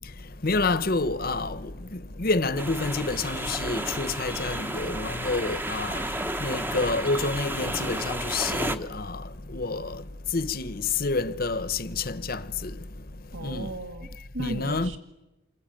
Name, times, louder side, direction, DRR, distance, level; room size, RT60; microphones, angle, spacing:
voice 1, 0.4-6.0 6.4-12.8 13.4-13.7 14.4-15.0, left 3 dB, 45° left, 1.0 m, -28 dB
sound 1, 2.6-8.8, right 1 dB, 10° right, 1.0 m, -32 dB
voice 2, 13.3-15.0, right 2 dB, 70° right, 2.2 m, -36 dB
29.0 x 22.5 x 9.1 m
head